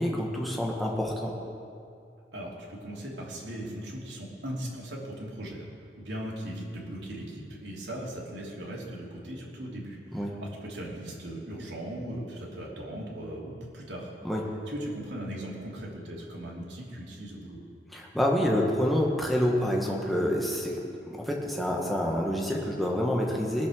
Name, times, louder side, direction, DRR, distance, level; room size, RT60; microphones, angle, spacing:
voice 1, 0.0-1.3 10.1-10.4 14.2-14.4 17.9-23.7, equal, ahead, -2 dB, 1.6 m, -27 dB
voice 2, 2.3-5.7 6.0-14.1 14.7-17.6, right 1 dB, 80° right, -4 dB, 3.1 m, -38 dB
20.0 x 7.4 x 6.5 m, 2.5 s
head